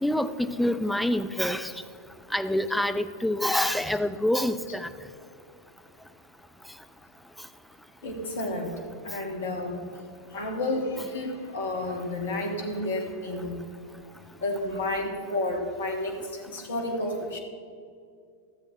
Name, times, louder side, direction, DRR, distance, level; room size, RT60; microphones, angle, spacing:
voice 1, 0.0-1.7 2.3-4.9, left 1 dB, ahead, 9 dB, 0.4 m, -26 dB
voice 2, 8.0-9.9 10.3-13.6 14.4-17.4, left 2 dB, 65° left, 2 dB, 1.7 m, -31 dB
14.0 x 7.2 x 4.3 m, 2.4 s
figure-of-eight pair, 90°, 0 cm